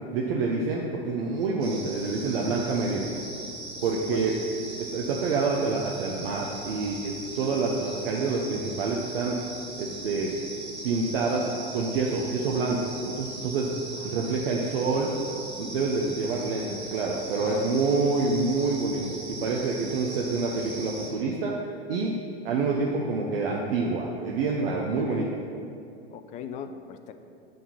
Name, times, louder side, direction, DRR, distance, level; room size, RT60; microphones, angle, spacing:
voice 1, 0.0-3.1 3.8-4.3 4.9-9.4 9.8-10.3 10.8-12.9 13.2-13.7 14.0-15.1 15.6-21.5 21.9-22.1 22.4-25.4, right 4 dB, 60° right, -1 dB, 0.8 m, -27 dB
sound 1, 1.6-21.1, right 2 dB, 85° right, 1.4 m, -40 dB
voice 2, 3.8-4.4 7.5-7.8 13.9-14.4 17.4-17.9 24.8-25.4 26.1-27.1, left 7 dB, 25° left, 9 dB, 0.3 m, -41 dB
7.7 x 3.7 x 5.8 m, 2.5 s
figure-of-eight pair, 95°, 32 cm